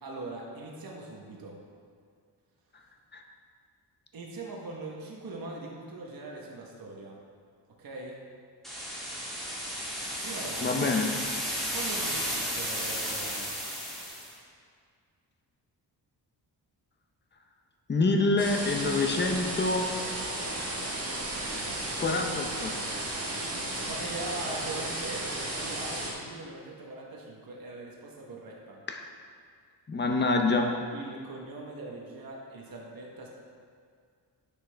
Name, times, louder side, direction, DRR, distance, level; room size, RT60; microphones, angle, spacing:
voice 1, 0.0-1.6 4.1-7.2 7.8-8.2 10.2-10.8 11.7-13.5 23.6-28.8 30.6-33.3, right 2 dB, 55° right, -2 dB, 1.1 m, -41 dB
sound 1, 8.6-14.3, equal, ahead, 1.5 m, -33 dB
voice 2, 10.6-11.1 17.9-19.9 22.0-22.7 28.9-29.0 29.9-30.7, left 3 dB, 25° left, 3 dB, 0.6 m, -26 dB
sound 2, 18.4-26.1, right 1 dB, 35° right, 1.5 m, -34 dB
9.8 x 6.3 x 3.3 m, 2.1 s
wide cardioid pair, 170°, 42 cm